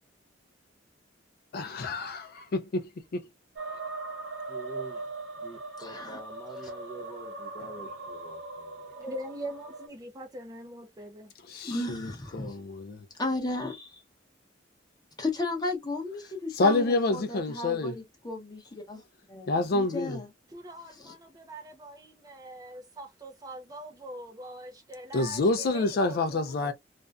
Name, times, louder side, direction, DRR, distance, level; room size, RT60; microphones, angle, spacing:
voice 1, 1.5-3.2 11.5-13.0 16.6-17.9 19.5-20.2 25.1-26.7, left 2 dB, 55° left, 0.4 m, -28 dB
sound 1, 3.6-9.9, right 3 dB, 75° right, 0.8 m, -40 dB
voice 2, 4.5-9.2, right 3 dB, 5° right, 0.9 m, -46 dB
voice 3, 5.8-6.2 11.6-12.6 13.2-14.0 15.2-19.5 19.7-20.3 20.9-21.1, left 2 dB, 20° left, 0.8 m, -34 dB
voice 4, 9.0-11.3 20.5-26.7, right 1 dB, 20° right, 0.5 m, -43 dB
2.5 x 2.2 x 2.2 m
head